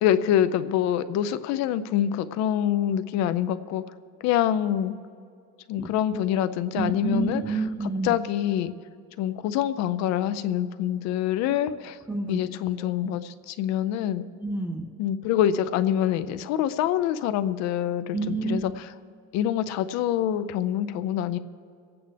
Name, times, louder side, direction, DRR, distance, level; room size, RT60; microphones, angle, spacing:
voice 1, 0.0-3.8 4.2-5.0 5.7-7.4 8.0-8.7 9.2-12.0 12.3-14.3 15.0-18.9 19.3-21.4, left 10 dB, 55° left, 13 dB, 0.6 m, -25 dB
voice 2, 6.7-8.2 11.5-11.6 12.1-12.5 12.8-13.0 14.4-14.9 18.1-18.7, right 3 dB, 5° right, 1 dB, 0.3 m, -29 dB
24.0 x 8.7 x 3.4 m, 2.4 s
cardioid pair, 170°, 33 cm